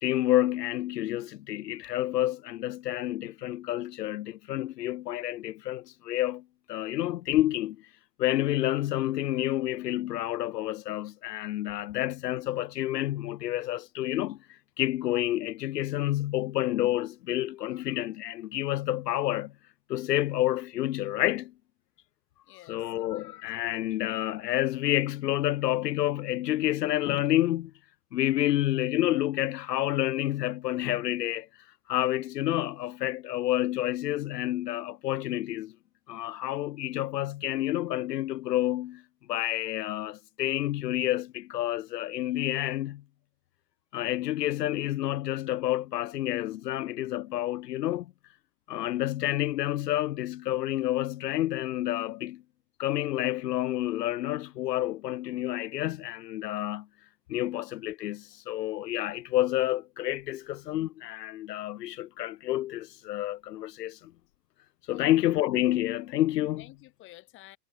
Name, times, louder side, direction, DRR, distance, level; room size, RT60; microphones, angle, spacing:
voice 1, 0.0-6.4 6.7-7.8 8.2-19.5 19.9-21.5 22.7-27.7 28.1-31.5 31.9-35.7 36.1-39.0 39.3-43.0 43.9-48.1 48.7-52.4 52.8-56.9 57.3-64.1 64.9-66.6, left 14 dB, 85° left, 0.7 m, -29 dB
voice 2, 22.4-23.4 64.9-65.3 66.6-67.6, left 16 dB, 25° left, 3.2 m, -52 dB
hypercardioid pair, 145°, 47 cm